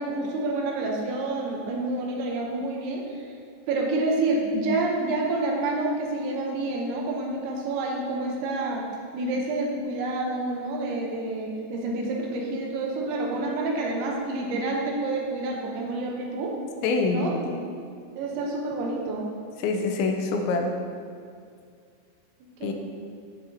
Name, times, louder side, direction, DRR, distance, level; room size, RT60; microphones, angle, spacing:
voice 1, 0.0-3.2 3.7-8.8 9.1-16.6 17.1-17.6 18.2-19.3 22.6-22.7, right 2 dB, 80° right, 0 dB, 3.3 m, -28 dB
voice 2, 16.8-17.3 19.6-20.7 22.6-22.7, left 3 dB, 90° left, 3 dB, 3.0 m, -25 dB
10.5 x 9.7 x 2.8 m, 2.2 s
omnidirectional pair, 5.3 m